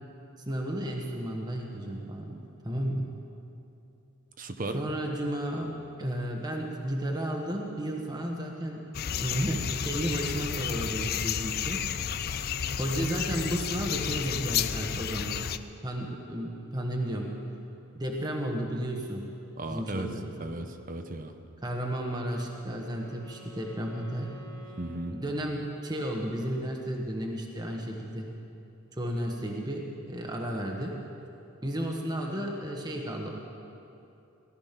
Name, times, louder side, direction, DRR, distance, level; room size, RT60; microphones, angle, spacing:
voice 1, 0.5-3.1 4.7-5.7 6.0-8.8 9.1-11.8 12.8-15.4 15.8-17.3 17.9-19.3 19.7-20.3 21.6-24.3 25.1-28.3 28.9-30.9 31.6-33.3, equal, 20° right, 0 dB, 1.2 m, -33 dB
voice 2, 4.4-4.8 19.6-20.1 20.4-21.3 24.8-25.1, right 2 dB, 40° right, 7 dB, 0.9 m, -35 dB
sound 1, 8.9-15.6, left 8 dB, 45° left, 0.4 m, -31 dB
Wind instrument woodwind instrument, 22.0-26.0, equal, 15° left, 1.7 m, -51 dB
18.0 x 12.5 x 5.9 m, 2.8 s
head